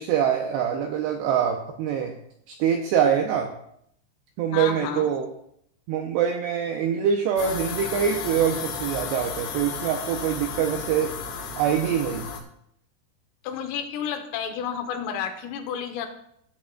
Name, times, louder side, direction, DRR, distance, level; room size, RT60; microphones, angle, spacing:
voice 1, 0.0-2.1 2.5-3.5 4.4-5.3 5.9-11.2 11.6-12.3, right 8 dB, 85° right, 3 dB, 2.4 m, -24 dB
voice 2, 4.5-5.1 13.4-16.1, left 8 dB, 85° left, 6 dB, 3.6 m, -31 dB
sound 1, 7.4-12.4, left 6 dB, 65° left, 2.6 m, -33 dB
16.0 x 8.8 x 2.3 m, 0.71 s
omnidirectional pair, 5.7 m